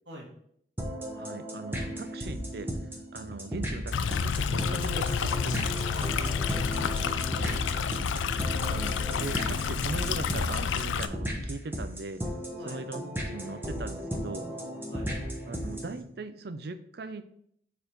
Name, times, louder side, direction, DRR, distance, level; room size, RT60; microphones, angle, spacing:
sound 1, 0.8-16.0, equal, 10° right, 0.9 m, -35 dB
voice 1, 1.1-2.7 3.1-5.9 8.4-12.3 12.7-14.5 15.5-17.3, right 3 dB, 55° right, 11 dB, 0.5 m, -39 dB
sound 2, 3.0-4.3 4.7-4.8 5.1-5.2 5.6-6.3 7.0-7.1, left 1 dB, 30° left, 0.6 m, -49 dB
Stream, 3.9-11.1, left 6 dB, 90° left, 0.4 m, -29 dB
voice 2, 5.8-8.0 12.6-12.8 14.9-15.1, equal, 80° right, -2 dB, 1.9 m, -47 dB
5.1 x 4.7 x 4.3 m, 0.67 s
head